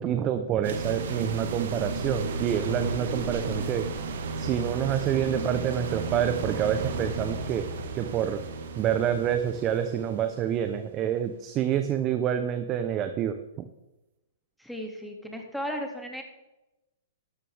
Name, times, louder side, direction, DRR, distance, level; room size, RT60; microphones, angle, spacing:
voice 1, 0.0-3.9 4.4-7.7 7.9-8.4 8.8-13.6, right 9 dB, 30° right, 9 dB, 0.9 m, -27 dB
sound 1, 0.6-10.7, right 3 dB, 60° right, 1.9 m, -33 dB
voice 2, 14.6-16.2, equal, ahead, 2 dB, 2.4 m, -35 dB
12.5 x 12.5 x 3.6 m, 0.98 s
figure-of-eight pair, 115°, 0 cm